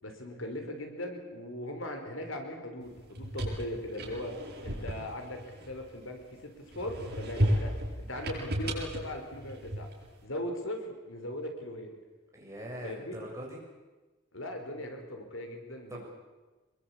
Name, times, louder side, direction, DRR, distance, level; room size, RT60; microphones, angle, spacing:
voice 1, 0.0-4.3 4.6-7.7 8.0-9.9 10.2-12.0 12.8-13.2 14.3-16.1, left 1 dB, 75° left, 4 dB, 4.5 m, -39 dB
sound 1, 3.0-6.2 6.7-10.1, equal, 50° right, 7.7 m, -34 dB
voice 2, 12.3-13.6 15.9-16.1, equal, 15° right, -2 dB, 7.0 m, -42 dB
26.0 x 22.0 x 8.6 m, 1.2 s
head